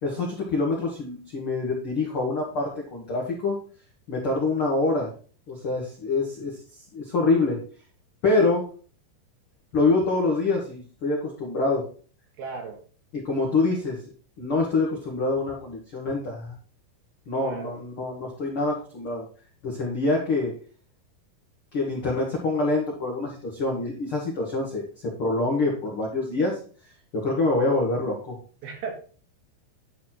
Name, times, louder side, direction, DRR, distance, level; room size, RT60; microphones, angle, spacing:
voice 1, 0.0-3.6 4.1-5.1 5.5-6.5 6.9-7.6 8.2-8.6 9.7-11.8 13.1-14.0 14.4-16.5 17.3-19.2 19.6-20.5 21.7-24.8 25.2-26.6 27.1-28.3, left 3 dB, 60° left, -3 dB, 1.4 m, -25 dB
voice 2, 12.4-12.8 17.3-17.7 28.6-28.9, right 5 dB, 65° right, 2 dB, 3.2 m, -36 dB
11.0 x 4.1 x 4.4 m, 0.40 s
omnidirectional pair, 5.0 m